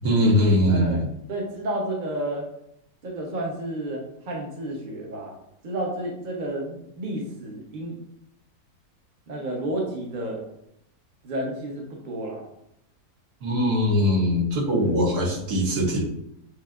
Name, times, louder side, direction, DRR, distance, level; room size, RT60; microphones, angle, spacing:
voice 1, 0.0-1.1 13.4-16.0, equal, 75° right, -2 dB, 1.6 m, -21 dB
voice 2, 0.7-1.0 1.3-2.5 3.0-5.4 5.6-8.0 9.3-10.4 11.2-12.4 14.8-14.9, right 1 dB, 40° right, -1 dB, 0.9 m, -31 dB
7.4 x 2.6 x 2.5 m, 0.76 s
omnidirectional pair, 1.7 m